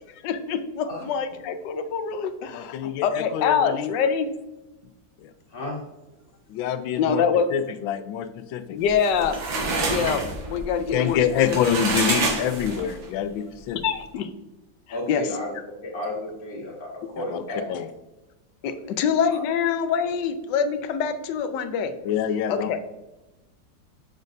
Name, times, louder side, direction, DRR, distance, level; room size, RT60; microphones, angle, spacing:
voice 1, 0.2-4.3 7.0-7.5 8.7-9.4 9.8-11.2 11.5-11.6 13.8-14.3 15.1-15.3 18.6-21.9 22.5-22.8, left 6 dB, 70° left, 10 dB, 1.2 m, -25 dB
voice 2, 2.5-3.9 5.2-5.3 6.5-7.2 7.5-8.8 10.9-13.8 17.3-17.4 17.7-17.9 22.0-22.8, left 9 dB, 90° left, 11 dB, 1.4 m, -26 dB
voice 3, 5.5-5.8 14.9-15.5 15.8-17.7 18.6-19.0 19.3-19.4, left 1 dB, 50° left, -3 dB, 2.3 m, -33 dB
sound 1, 8.9-13.1, right 3 dB, 90° right, 2.2 m, -27 dB
7.3 x 6.4 x 2.6 m, 1.0 s
omnidirectional pair, 2.1 m